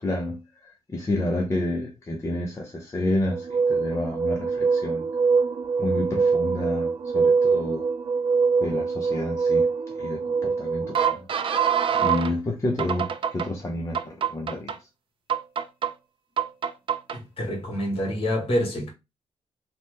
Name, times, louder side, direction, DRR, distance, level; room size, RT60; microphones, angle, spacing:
voice 1, 0.0-5.1 5.8-7.9 8.6-9.7 10.0-11.3 12.0-14.7, left 1 dB, 25° left, 0.6 m, -29 dB
sound 1, 3.3-12.3 12.8-13.5 13.9-14.8 15.3-15.9 16.4-17.2, right 5 dB, 50° right, 0.4 m, -24 dB
voice 2, 17.4-18.9, equal, 55° left, 1.5 m, -26 dB
2.9 x 2.1 x 3.2 m
cardioid pair, 95°, 11 cm